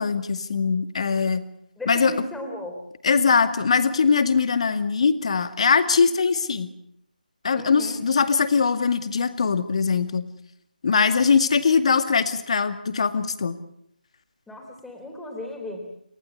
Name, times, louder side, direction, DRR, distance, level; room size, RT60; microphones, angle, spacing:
voice 1, 0.0-1.4 1.9-2.1 3.0-6.7 7.4-10.3 10.8-13.6, left 5 dB, 45° left, 9 dB, 2.1 m, -21 dB
voice 2, 1.8-2.8 7.5-8.0 14.5-15.9, left 1 dB, 5° left, 2 dB, 3.8 m, -35 dB
30.0 x 16.5 x 8.4 m, 0.72 s
figure-of-eight pair, 155°, 5 cm